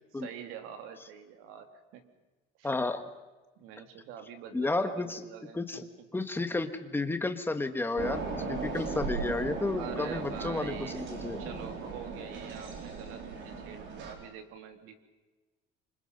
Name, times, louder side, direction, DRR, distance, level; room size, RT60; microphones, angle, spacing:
voice 1, 0.1-2.1 2.6-2.7 3.6-5.9 9.7-11.0 11.4-15.0, right 8 dB, 85° right, 6 dB, 2.9 m, -45 dB
voice 2, 2.6-3.1 4.5-5.2 5.5-5.8 6.1-11.4, left 3 dB, 10° left, 8 dB, 1.6 m, -32 dB
sound 1, 8.0-14.1, right 4 dB, 60° right, 4.5 m, -37 dB
27.0 x 25.5 x 5.4 m, 1.2 s
cardioid pair, 135°, 21 cm